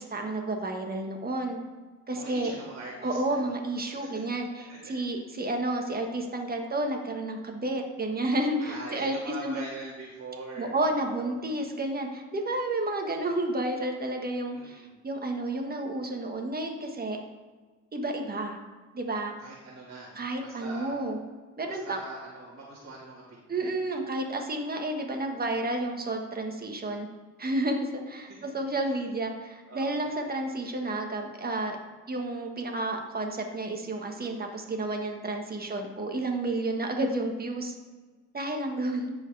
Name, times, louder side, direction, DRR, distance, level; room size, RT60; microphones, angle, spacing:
voice 1, 0.0-1.6 2.1-2.5 3.0-9.6 10.6-17.2 17.9-18.6 18.9-19.3 20.1-21.2 21.6-22.0 23.5-27.1 27.4-31.8 32.1-37.7 38.3-39.1, right 2 dB, 30° right, 3 dB, 1.5 m, -31 dB
voice 2, 2.1-3.5 3.9-4.2 4.7-4.9 8.6-11.4 14.5-14.9 19.4-20.1 20.4-21.0 21.7-23.7 28.3-28.4 28.9-29.0 29.7-30.0 35.6-35.8, right 2 dB, 50° right, -7 dB, 2.0 m, -43 dB
14.0 x 4.8 x 3.4 m, 1.4 s
cardioid pair, 90°, 30 cm